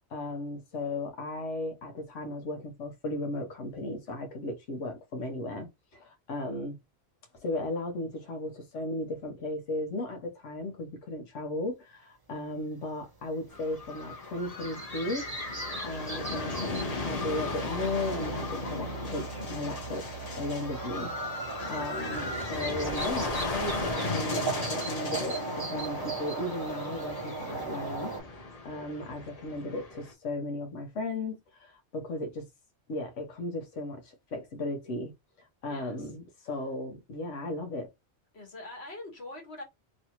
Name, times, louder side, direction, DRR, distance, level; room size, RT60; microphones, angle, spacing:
voice 1, 0.1-6.8 7.4-15.3 15.8-20.1 20.4-28.1 28.6-32.5 32.9-37.9, left 2 dB, 85° left, 1.2 m, -36 dB
sound 1, 13.5-30.1, left 2 dB, 35° left, 0.9 m, -36 dB
sound 2, 13.6-28.2, right 4 dB, 20° right, 0.8 m, -38 dB
voice 2, 21.6-22.0 35.6-36.1 38.3-39.6, left 2 dB, 60° left, 1.5 m, -44 dB
3.1 x 2.6 x 2.8 m
omnidirectional pair, 1.2 m